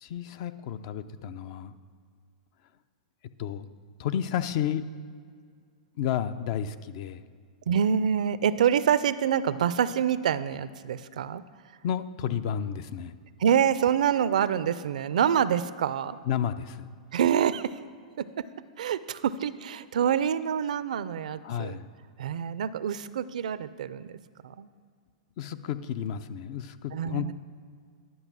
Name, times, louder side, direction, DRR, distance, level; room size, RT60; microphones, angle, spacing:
voice 1, 0.0-1.8 3.4-3.7 4.0-4.8 6.0-7.3 11.8-13.2 16.3-16.9 21.4-21.9 25.4-27.3, left 9 dB, 50° left, 12 dB, 0.5 m, -31 dB
voice 2, 7.7-11.4 13.4-16.2 17.1-17.8 18.2-18.5 18.8-21.8 22.2-24.7 26.9-27.3, right 8 dB, 75° right, 15 dB, 0.4 m, -26 dB
11.0 x 5.0 x 6.1 m, 2.1 s
hypercardioid pair, 120°, 4 cm